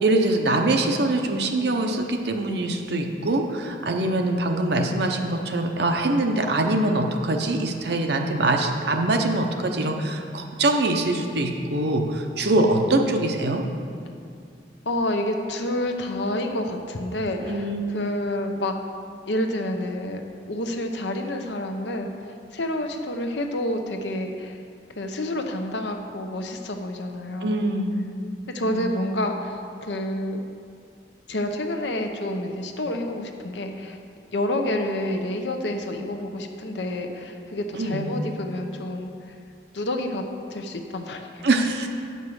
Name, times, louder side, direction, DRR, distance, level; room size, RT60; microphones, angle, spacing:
voice 1, 0.0-13.6 17.4-18.1 27.4-28.0 28.6-29.0 37.7-38.2 41.4-41.9, right 2 dB, 65° right, 3 dB, 0.8 m, -23 dB
voice 2, 12.5-13.1 14.9-18.8 19.3-22.1 22.5-24.6 24.9-27.6 28.5-30.4 31.3-34.0 34.3-39.1 39.7-40.2 40.5-41.4, left 1 dB, 75° left, 4 dB, 0.8 m, -29 dB
8.7 x 5.5 x 6.3 m, 2.4 s
head